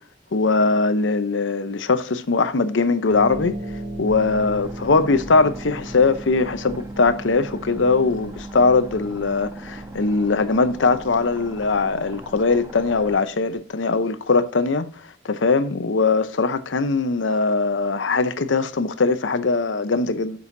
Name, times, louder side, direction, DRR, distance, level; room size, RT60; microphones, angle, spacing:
voice 1, 0.3-3.6 4.0-20.4, left 3 dB, 85° left, 0.7 m, -21 dB
Harp, 3.1-13.7, right 1 dB, 50° right, 2.8 m, -37 dB
sound 1, 4.1-13.1, right 1 dB, 15° right, 1.1 m, -42 dB
8.4 x 6.3 x 2.7 m
head